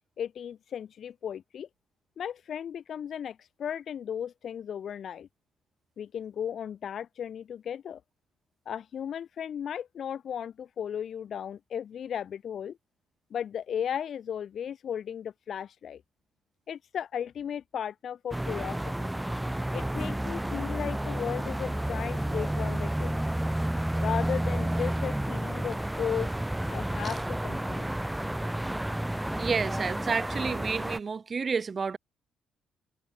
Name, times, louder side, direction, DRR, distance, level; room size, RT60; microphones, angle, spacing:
voice 1, 0.2-1.7 2.2-5.3 6.0-8.0 8.7-12.8 13.3-16.0 16.7-19.1 19.7-23.3 24.0-26.3 26.7-27.9, left 8 dB, 60° left, 3.6 m, -35 dB
sound 1, 18.3-31.0, right 1 dB, 5° right, 3.1 m, -31 dB
voice 2, 29.4-32.0, right 5 dB, 40° right, 3.5 m, -30 dB
cardioid pair, 90°, 0 cm